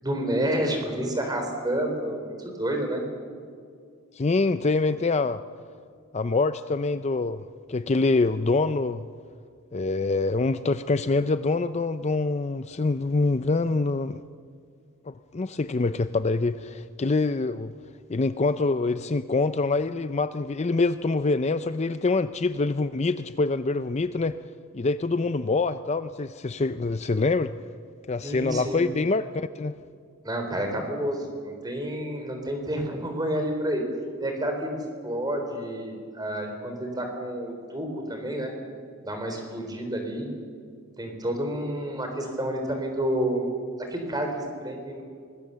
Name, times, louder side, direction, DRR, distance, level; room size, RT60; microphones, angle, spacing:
voice 1, 0.0-3.0 28.2-28.8 30.2-33.8 34.2-38.5 39.0-40.3 41.0-43.5 43.8-45.0, right 1 dB, 20° right, 4 dB, 3.9 m, -29 dB
voice 2, 4.2-5.4 6.1-9.0 9.7-14.2 15.1-17.7 18.1-24.4 24.7-27.5 28.1-29.8, left 3 dB, 30° left, 12 dB, 0.5 m, -25 dB
24.5 x 20.5 x 6.9 m, 2.2 s
head